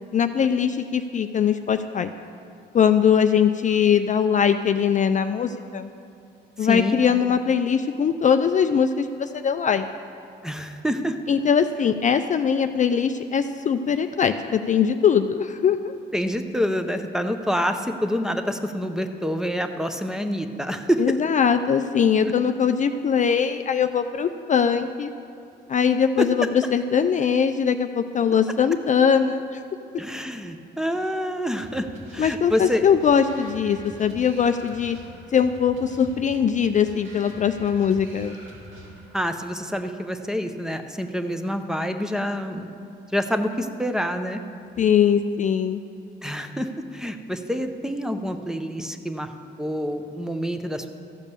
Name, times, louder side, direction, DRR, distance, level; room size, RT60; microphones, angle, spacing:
voice 1, 0.1-2.1 2.7-5.9 6.6-9.8 11.3-15.9 21.0-25.1 25.7-29.6 32.2-35.0 35.3-38.4 44.8-45.8, left 7 dB, 40° left, 8 dB, 0.4 m, -21 dB
voice 2, 6.6-7.0 10.4-11.2 16.1-21.0 26.2-26.3 30.0-31.9 32.1-32.8 39.1-42.7 43.1-44.4 46.2-50.9, equal, 5° right, 7 dB, 0.7 m, -27 dB
sound 1, 31.6-39.2, equal, 85° right, 2.4 m, -45 dB
14.0 x 5.2 x 6.8 m, 2.6 s
cardioid pair, 90°, 20 cm